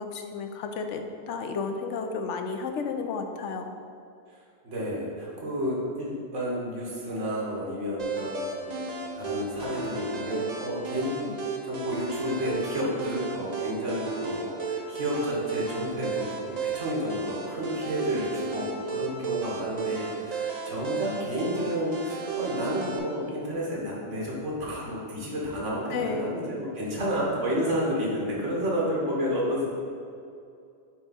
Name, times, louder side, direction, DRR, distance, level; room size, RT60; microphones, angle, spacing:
voice 1, 0.0-3.7 25.9-26.4, left 4 dB, 80° left, 5 dB, 0.9 m, -32 dB
voice 2, 4.6-29.7, equal, 85° right, -5 dB, 1.7 m, -31 dB
sound 1, 8.0-23.0, right 4 dB, 45° right, 0.6 m, -34 dB
7.9 x 3.5 x 4.1 m, 2.4 s
omnidirectional pair, 1.2 m